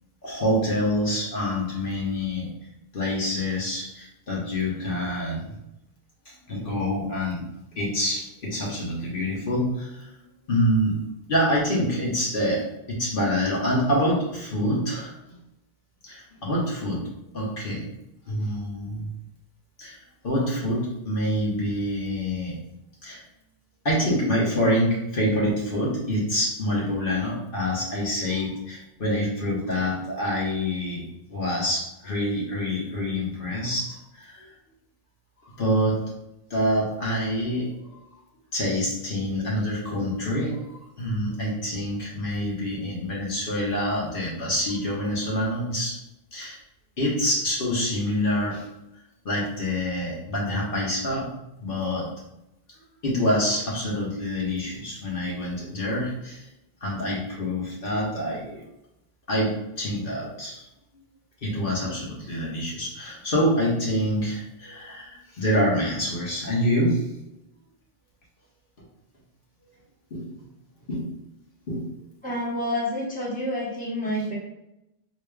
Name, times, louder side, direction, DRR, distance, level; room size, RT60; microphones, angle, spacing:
voice 1, 0.2-2.5 2.9-5.6 6.3-7.5 7.8-10.1 10.5-15.2 16.0-17.0 17.3-17.9 18.3-19.1 19.8-22.6 23.0-23.2 23.8-31.0 31.3-34.5 35.4-36.0 36.5-37.7 38.5-46.0 46.3-46.6 47.0-48.6 49.2-51.3 51.6-52.1 53.0-56.5 56.8-58.6 59.3-60.6 61.4-67.1 70.1-70.3 70.9-71.1 71.7-71.8, equal, 60° left, -4 dB, 1.2 m, -26 dB
voice 2, 72.2-74.4, left 1 dB, 10° left, -6 dB, 1.0 m, -28 dB
4.8 x 2.9 x 2.3 m, 0.90 s
omnidirectional pair, 1.0 m